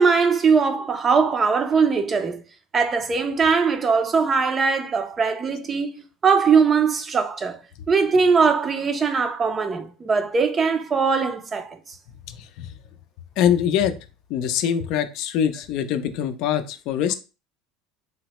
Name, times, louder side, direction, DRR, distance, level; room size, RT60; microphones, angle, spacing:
voice 1, 0.0-2.4 2.7-7.6 7.9-11.8, right 5 dB, 20° right, 0.4 m, -20 dB
voice 2, 13.4-13.9 14.3-17.1, left 9 dB, 55° left, 0.4 m, -23 dB
3.9 x 2.1 x 2.9 m
cardioid pair, 145°, 0 cm